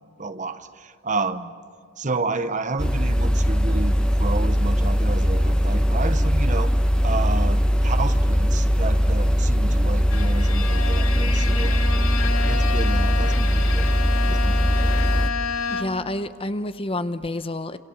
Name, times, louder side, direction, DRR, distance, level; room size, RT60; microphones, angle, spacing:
voice 1, 0.2-1.5 2.0-6.7 7.0-11.9 12.5-13.9 14.3-14.9, right 3 dB, 35° right, 0.9 m, -30 dB
sound 1, 2.8-15.3, equal, 5° left, 1.1 m, -20 dB
Bowed string instrument, 10.1-16.2, left 6 dB, 85° left, 2.2 m, -30 dB
voice 2, 15.7-17.8, left 1 dB, 25° left, 0.8 m, -28 dB
29.5 x 27.5 x 7.1 m
head